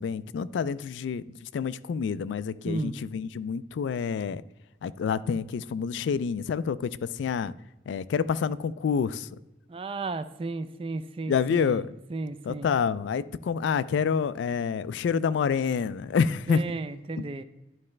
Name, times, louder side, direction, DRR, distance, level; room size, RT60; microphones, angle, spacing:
voice 1, 0.0-4.4 4.8-7.5 7.9-9.3 11.3-11.9 12.4-16.6 17.2-17.3, left 6 dB, 85° left, 0.3 m, -28 dB
voice 2, 9.7-11.8 12.1-12.7 16.5-17.4, right 3 dB, 30° right, 0.3 m, -33 dB
11.0 x 4.2 x 3.2 m
head